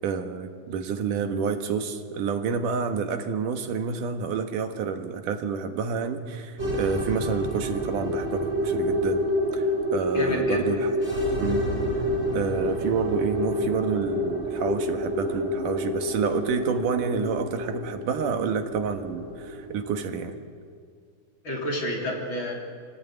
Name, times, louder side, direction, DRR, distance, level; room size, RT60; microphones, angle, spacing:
voice 1, 0.0-9.2 9.5-10.9 11.4-11.6 12.3-20.4, right 6 dB, 80° right, 7 dB, 3.0 m, -29 dB
sound 1, 6.6-20.2, left 1 dB, 20° right, 4.1 m, -28 dB
voice 2, 10.1-10.6 21.4-22.5, equal, 40° left, -1 dB, 4.2 m, -29 dB
26.0 x 17.5 x 9.2 m, 2.1 s
omnidirectional pair, 3.6 m